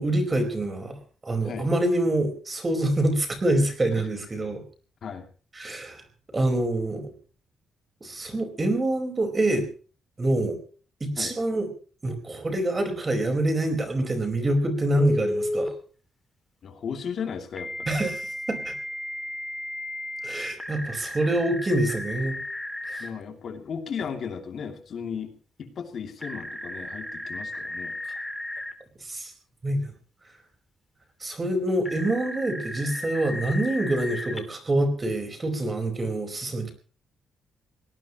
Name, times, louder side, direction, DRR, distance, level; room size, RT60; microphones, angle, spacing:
voice 1, 0.0-4.6 5.5-6.0 6.3-7.1 8.0-9.7 10.2-10.6 11.0-11.7 12.0-15.7 17.9-18.7 20.2-22.4 22.9-23.0 29.0-29.3 29.6-29.8 31.2-36.7, right 1 dB, 20° right, 7 dB, 4.7 m, -26 dB
Telephone, 15.0-15.7 17.6-23.1 26.2-28.7 31.9-34.4, left 1 dB, 10° left, 2.5 m, -34 dB
voice 2, 16.6-17.9 23.0-25.3 25.6-27.9, left 6 dB, 55° left, 5 dB, 2.8 m, -35 dB
22.5 x 18.5 x 3.1 m, 0.39 s
cardioid pair, 135°, 0 cm